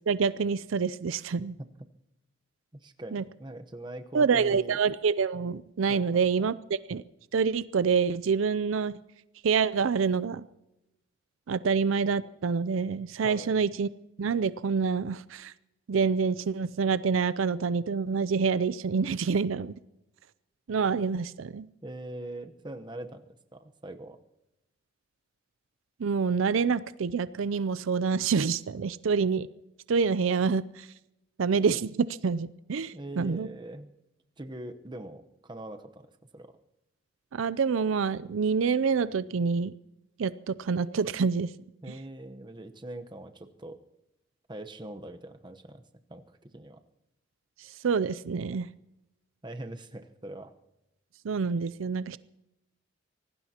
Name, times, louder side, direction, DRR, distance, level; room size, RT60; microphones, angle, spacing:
voice 1, 0.1-1.6 3.1-3.2 4.1-7.0 7.3-9.0 9.4-10.4 11.5-13.9 14.2-15.5 15.9-19.7 20.7-21.7 26.0-29.5 29.9-30.9 31.4-31.9 32.2-33.5 37.3-39.7 40.2-41.5 47.6-48.7 51.2-52.2, right 5 dB, 80° right, 17 dB, 0.5 m, -27 dB
voice 2, 2.7-4.8 5.9-6.5 13.2-13.5 21.8-23.2 23.5-24.2 32.9-33.9 34.4-36.5 41.8-43.8 44.5-45.8 46.1-46.8 49.4-50.5, right 1 dB, 20° right, 7 dB, 0.9 m, -42 dB
24.5 x 18.0 x 2.9 m, 0.90 s
head